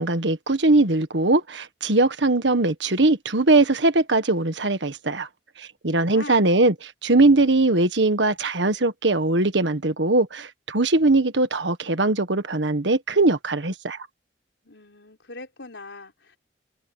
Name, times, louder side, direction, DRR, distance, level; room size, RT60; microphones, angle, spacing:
voice 1, 0.0-5.3 5.6-14.0, right 2 dB, 80° right, 1.6 m, -21 dB
voice 2, 5.9-6.5 14.6-16.4, left 3 dB, 85° left, 4.4 m, -42 dB
head